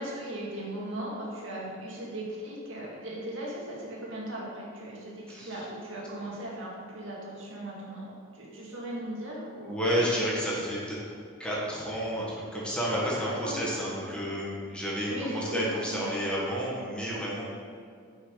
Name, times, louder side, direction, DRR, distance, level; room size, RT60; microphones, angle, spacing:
voice 1, 0.0-8.0 8.3-10.0 13.2-13.6 15.1-16.1, right 1 dB, 70° right, -4 dB, 2.0 m, -38 dB
voice 2, 5.3-5.6 9.7-11.0 11.4-17.4, equal, 5° left, -6 dB, 1.6 m, -31 dB
9.3 x 6.1 x 4.1 m, 2.3 s
head